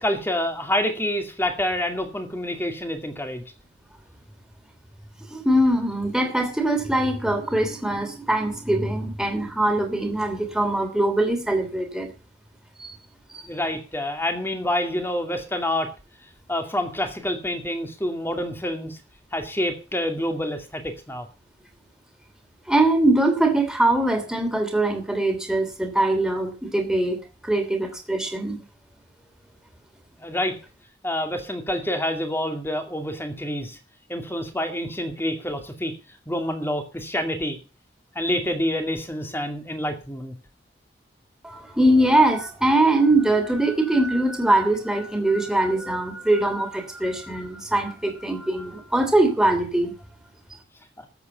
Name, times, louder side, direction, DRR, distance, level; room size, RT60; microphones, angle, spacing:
voice 1, 0.0-3.4 13.4-15.9 16.5-19.0 19.3-21.3 30.2-30.6 31.0-33.8 34.1-35.9 36.3-37.6 38.2-40.3, left 1 dB, 10° left, 5 dB, 2.3 m, -27 dB
voice 2, 5.3-12.1 12.8-13.0 13.3-13.4 22.7-27.2 27.4-28.6 41.4-49.9, right 1 dB, 5° right, 4 dB, 3.0 m, -22 dB
14.0 x 8.1 x 6.8 m, 0.34 s
head